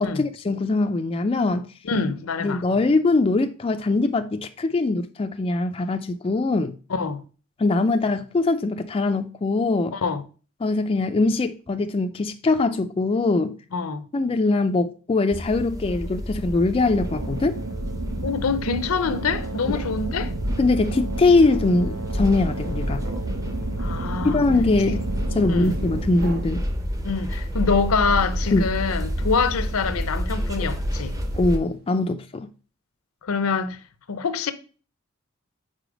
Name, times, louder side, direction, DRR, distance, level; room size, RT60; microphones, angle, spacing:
voice 1, 0.0-1.7 2.4-6.7 7.6-10.0 10.6-13.6 14.1-17.5 19.7-19.8 20.6-23.1 24.2-25.0 25.4-26.7 28.5-28.6 31.4-32.5, left 3 dB, 25° left, 0.4 m, -22 dB
voice 2, 1.8-2.6 6.9-7.2 9.9-10.2 13.7-14.1 18.2-20.3 23.8-24.4 24.9-25.0 25.5-25.8 27.0-31.2 33.2-33.8 34.1-34.5, left 5 dB, 80° left, 0.6 m, -25 dB
sound 1, 15.3-31.6, equal, 15° right, 0.7 m, -29 dB
sound 2, 16.8-26.0, right 3 dB, 90° right, 1.0 m, -33 dB
sound 3, 22.0-32.0, right 2 dB, 50° right, 0.6 m, -44 dB
5.0 x 4.1 x 4.9 m
head